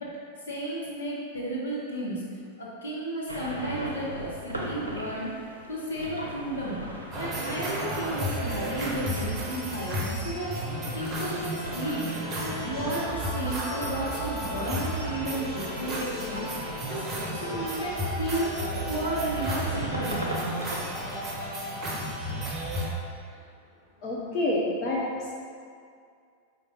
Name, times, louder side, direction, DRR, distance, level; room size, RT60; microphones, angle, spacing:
voice 1, 0.4-5.3 5.7-6.8 7.2-12.1 12.4-17.0 17.3-20.2, right 1 dB, 70° left, -6 dB, 1.2 m, -33 dB
sound 1, 3.3-21.5, right 1 dB, 80° right, 0.6 m, -38 dB
sound 2, 7.1-22.9, equal, 25° right, 0.8 m, -33 dB
voice 2, 24.0-25.3, left 1 dB, 35° left, -5 dB, 0.6 m, -28 dB
4.9 x 2.6 x 4.1 m, 2.3 s
figure-of-eight pair, 90°, 0 cm